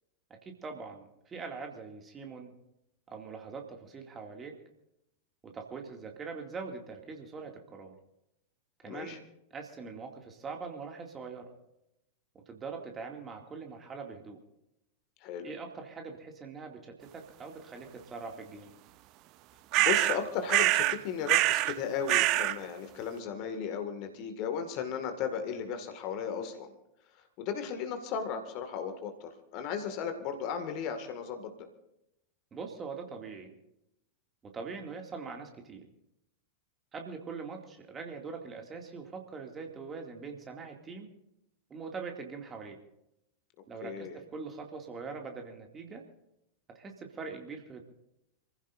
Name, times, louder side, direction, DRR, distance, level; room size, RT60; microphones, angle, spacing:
voice 1, 0.3-2.5 3.1-4.6 5.4-7.9 8.8-9.2 9.5-11.5 12.5-14.4 15.4-18.8 32.5-33.5 34.4-35.9 36.9-41.1 41.7-42.8 43.7-46.0 46.7-47.8, right 4 dB, 20° right, 2 dB, 2.4 m, -42 dB
voice 2, 8.8-9.2 15.2-15.5 19.8-26.7 27.4-31.5 43.8-44.2, left 7 dB, 40° left, 7 dB, 2.1 m, -35 dB
sound 1, 19.7-20.2 20.5-21.0 21.3-21.7 22.1-22.5, right 16 dB, 40° right, 0.7 m, -25 dB
28.0 x 15.5 x 2.7 m, 0.83 s
figure-of-eight pair, 90°, 0 cm